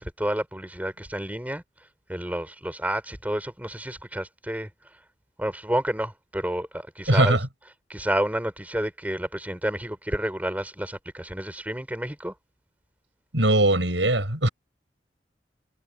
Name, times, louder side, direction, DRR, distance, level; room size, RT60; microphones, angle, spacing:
voice 1, 0.0-1.6 2.1-4.7 5.4-7.4 7.9-12.3, right 1 dB, 10° right, 6.9 m, -30 dB
voice 2, 7.1-7.5 13.3-14.5, right 1 dB, 85° right, 7.8 m, -20 dB
head